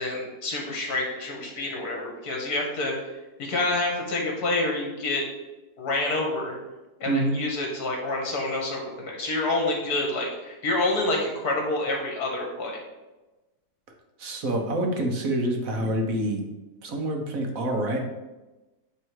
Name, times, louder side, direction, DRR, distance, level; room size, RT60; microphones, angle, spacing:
voice 1, 0.0-3.0 3.4-5.3 5.8-6.5 7.0-12.8, left 2 dB, 65° left, 0 dB, 2.0 m, -28 dB
voice 2, 7.1-7.4 14.2-16.4 16.8-18.0, right 1 dB, 55° right, 2 dB, 1.4 m, -26 dB
9.2 x 3.4 x 4.7 m, 1.1 s
omnidirectional pair, 1.8 m